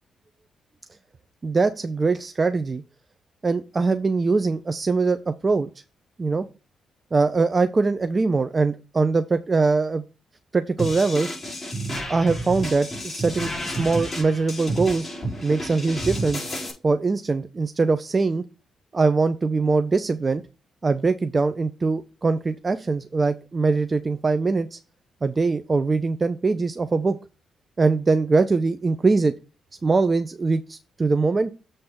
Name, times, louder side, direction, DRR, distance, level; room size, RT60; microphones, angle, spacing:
voice 1, 1.4-2.8 3.4-5.7 6.2-6.5 7.1-10.0 10.5-11.3 12.1-15.1 15.4-16.5 16.8-18.4 18.9-20.4 20.8-24.8 25.2-27.2 27.8-29.3 29.8-31.5, right 4 dB, 35° right, 9 dB, 0.5 m, -22 dB
sound 1, 10.8-16.7, right 1 dB, 35° left, 4.9 m, -31 dB
7.9 x 3.2 x 5.8 m, 0.31 s
cardioid pair, 70°, 0 cm